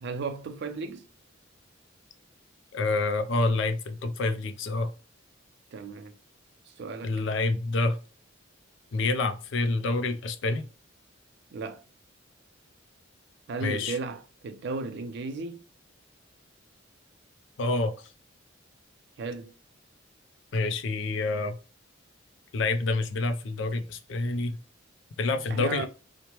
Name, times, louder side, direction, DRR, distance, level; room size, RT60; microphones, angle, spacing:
voice 1, 0.0-1.1 5.7-6.2 6.7-7.2 11.5-11.8 13.5-15.6 19.2-19.5 25.5-25.9, right 4 dB, 60° right, 0.4 m, -35 dB
voice 2, 2.7-4.9 7.0-8.0 8.9-10.6 13.6-14.0 17.6-18.1 20.5-21.6 22.5-24.6 25.2-25.9, left 3 dB, 65° left, 0.4 m, -27 dB
2.9 x 2.1 x 2.9 m
head